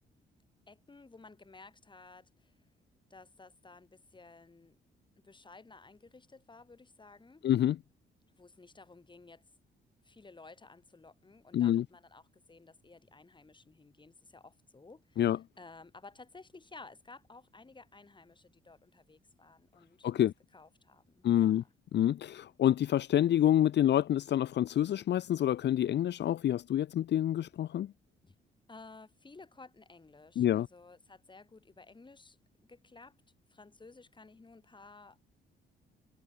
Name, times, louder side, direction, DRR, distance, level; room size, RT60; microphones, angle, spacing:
voice 1, 0.7-2.5 3.1-4.8 5.2-7.5 8.4-9.4 10.0-20.3 20.5-21.7 28.2-28.4 28.7-33.2 33.5-35.3, left 3 dB, 25° left, 5.5 m, -55 dB
voice 2, 7.4-7.8 11.5-11.8 15.2-15.4 20.0-20.3 21.2-21.6 21.9-27.9 30.4-30.7, left 11 dB, 60° left, 0.8 m, -27 dB
cardioid pair, 90°, 20 cm